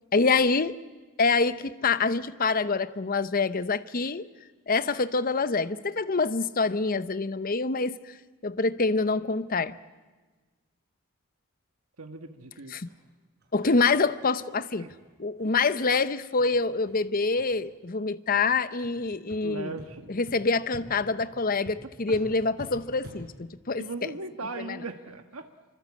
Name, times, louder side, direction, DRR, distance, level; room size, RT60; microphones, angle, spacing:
voice 1, 0.1-0.8 1.2-4.3 4.7-8.1 8.4-9.8 12.7-12.9 13.5-14.9 15.2-19.7 20.1-23.8 24.6-24.8, left 4 dB, 40° left, 0.8 m, -26 dB
voice 2, 12.0-12.8 13.6-13.8 14.8-14.9 19.4-20.1 23.8-25.5, right 3 dB, 80° right, 1.4 m, -38 dB
sound 1, 12.8-13.0 13.4-13.5 13.9-14.0 14.4-14.5 14.9-15.0 15.4-15.5 15.8-16.0 16.4-16.5 16.9-17.0 17.3-17.7 18.3-18.4 18.8-18.9 19.3-19.4 19.8-19.9 20.3-20.4 20.7-20.8 21.2-21.3 21.6-21.7 22.1-22.2 22.6-22.7 23.0-23.2, equal, 50° right, 7.0 m, -47 dB
26.5 x 24.5 x 8.5 m
head